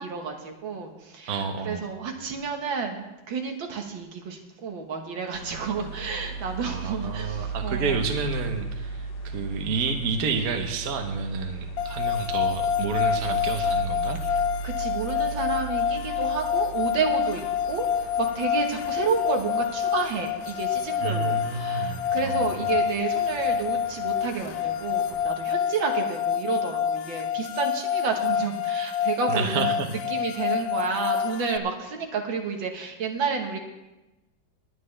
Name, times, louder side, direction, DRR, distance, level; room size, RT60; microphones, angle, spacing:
voice 1, 0.0-8.0 14.2-33.6, right 5 dB, 75° right, 3 dB, 2.1 m, -31 dB
voice 2, 1.3-1.9 6.6-14.2 21.0-22.6 29.3-29.9, right 4 dB, 55° right, 5 dB, 1.3 m, -30 dB
sound 1, 5.3-25.2, right 4 dB, 60° left, 1.7 m, -38 dB
sound 2, 11.8-31.6, left 8 dB, 80° left, 0.8 m, -27 dB
20.0 x 9.3 x 3.3 m, 1.0 s
omnidirectional pair, 2.1 m